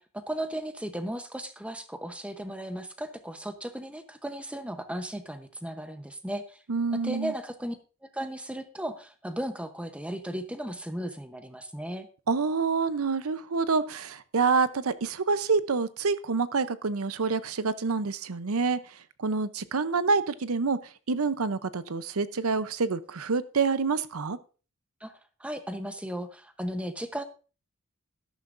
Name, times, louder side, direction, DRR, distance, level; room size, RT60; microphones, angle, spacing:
voice 1, 0.0-6.6 7.0-12.1 25.0-27.2, right 1 dB, 5° right, 8 dB, 0.8 m, -36 dB
voice 2, 6.7-7.3 12.3-18.8 19.2-20.8 21.1-24.4, right 4 dB, 80° right, 14 dB, 0.7 m, -27 dB
13.0 x 11.5 x 2.6 m, 0.37 s
head